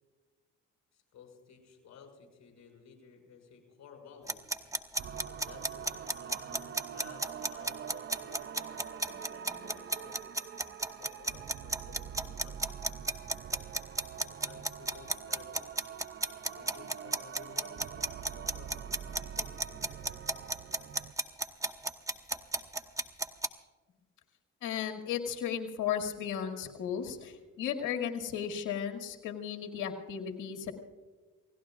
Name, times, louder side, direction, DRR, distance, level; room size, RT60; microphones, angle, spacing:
voice 1, 0.9-4.4 5.1-10.2 10.8-13.1 14.1-15.7 16.4-20.0, left 6 dB, 65° left, 1 dB, 5.8 m, -55 dB
sound 1, 4.3-23.5, right 2 dB, 10° right, 1.0 m, -33 dB
sound 2, 5.0-21.1, right 9 dB, 40° right, 0.5 m, -45 dB
voice 2, 24.6-30.7, left 8 dB, 85° left, 4 dB, 2.1 m, -35 dB
29.5 x 17.0 x 2.4 m, 1.3 s
cardioid pair, 90°, 30 cm